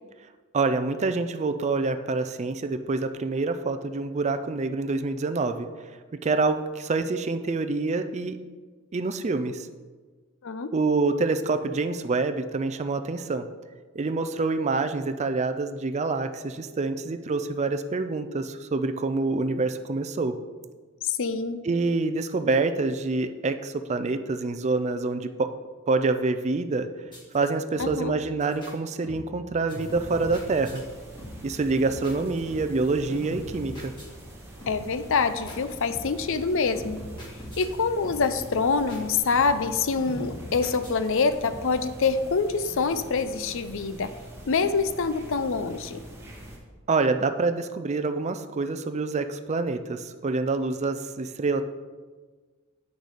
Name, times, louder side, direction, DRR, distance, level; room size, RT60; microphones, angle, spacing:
voice 1, 0.5-5.7 6.2-8.4 8.9-9.7 10.7-13.4 13.9-20.3 21.6-25.5 25.9-26.9 27.3-30.8 31.4-33.9 46.9-51.6, right 3 dB, 30° right, 9 dB, 0.4 m, -26 dB
voice 2, 21.0-21.7 27.8-28.2 34.7-37.0 37.6-44.1 44.5-46.0, left 4 dB, 65° left, 11 dB, 0.6 m, -25 dB
sound 1, 27.1-27.5 27.8-28.1 28.4-28.7 29.0-29.4 29.7-30.8 31.2-31.6 31.8-32.8 33.1-34.3 34.6-35.0 35.5-36.3 36.8-37.8 38.0-38.4 38.7-39.0 39.3-39.7 40.0-41.2 41.5-41.8, left 1 dB, 20° left, 2.4 m, -41 dB
sound 2, 29.9-46.6, right 1 dB, 10° right, 1.7 m, -45 dB
8.2 x 6.4 x 5.0 m, 1.4 s
head